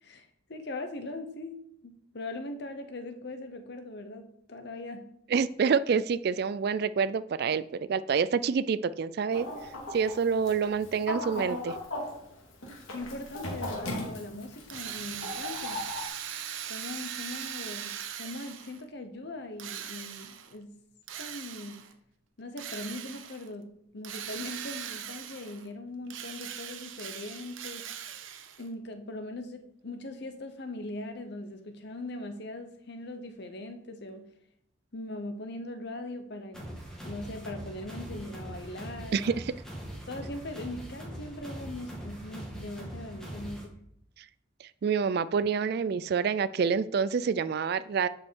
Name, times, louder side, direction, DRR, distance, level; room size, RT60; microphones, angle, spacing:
voice 1, 0.0-5.1 12.9-15.8 16.7-17.9 18.2-20.7 21.2-21.8 22.4-23.7 23.9-27.9 28.6-34.3 34.9-36.8 37.0-39.5 40.1-43.7, left 2 dB, 60° left, 8 dB, 0.9 m, -40 dB
voice 2, 5.3-9.5 9.9-11.8 39.1-39.4 44.8-48.1, right 6 dB, 50° right, 16 dB, 0.3 m, -27 dB
Chicken rooster, 9.3-16.1, left 1 dB, 85° left, 2.4 m, -38 dB
Drill, 14.7-18.8 19.6-20.5 21.1-21.9 22.6-23.5 24.0-25.7 26.1-28.7, right 9 dB, 80° right, 0.9 m, -40 dB
sound 1, 36.5-43.6, right 1 dB, 5° left, 2.1 m, -42 dB
12.0 x 5.3 x 4.6 m, 0.73 s
head